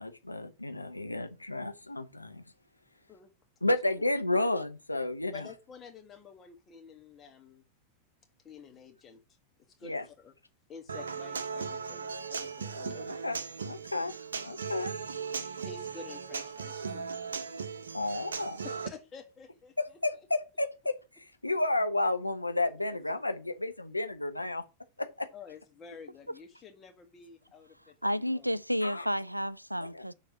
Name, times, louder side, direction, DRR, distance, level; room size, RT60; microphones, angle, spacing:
voice 1, 0.0-2.4 3.6-5.5 9.8-10.0 13.1-14.1 14.4-14.9 17.9-18.6 19.8-24.6 25.0-25.3 28.8-29.1 29.9-30.0, left 2 dB, 85° left, 0.9 m, -32 dB
voice 2, 5.3-7.6 8.4-9.2 9.8-10.3 10.7-13.1 15.6-17.1 17.5-17.6 18.6-20.0 22.9-23.0 25.3-28.5, left 6 dB, 25° left, 1.8 m, -50 dB
Human voice / Acoustic guitar, 10.9-18.9, right 5 dB, 70° right, 0.7 m, -38 dB
voice 3, 28.0-30.1, equal, 90° right, 0.4 m, -31 dB
6.7 x 4.0 x 6.3 m
figure-of-eight pair, 90°, 0 cm